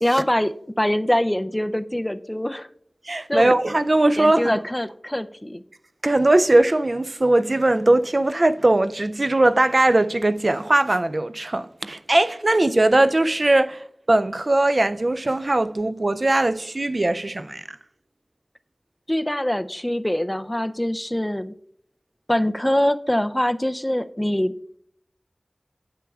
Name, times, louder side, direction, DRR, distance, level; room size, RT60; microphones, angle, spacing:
voice 1, 0.0-2.7 3.3-3.5 4.2-5.6 19.1-21.5 22.3-24.5, left 1 dB, 15° left, 0.4 m, -24 dB
voice 2, 3.0-4.6 6.0-17.7, right 2 dB, 55° right, 0.3 m, -20 dB
9.2 x 8.0 x 2.3 m
wide cardioid pair, 45°, 0 cm